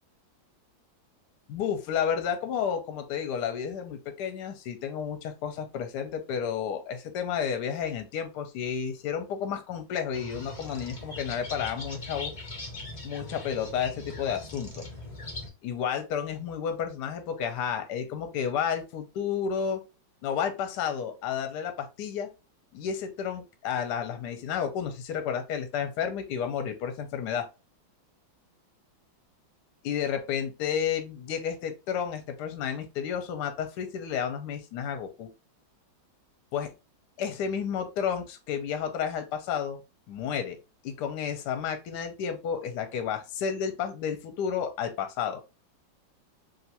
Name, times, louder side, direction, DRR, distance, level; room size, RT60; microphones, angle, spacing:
voice 1, 1.5-12.3 13.0-14.8 15.6-19.8 20.2-22.3 22.7-27.5 29.8-35.3 36.5-36.7 37.2-39.8 40.1-40.6 40.8-45.4, left 7 dB, 70° left, 7 dB, 1.1 m, -31 dB
sound 1, 10.1-15.5, left 2 dB, 40° left, 0.6 m, -40 dB
3.2 x 2.5 x 2.7 m, 0.28 s
omnidirectional pair, 2.1 m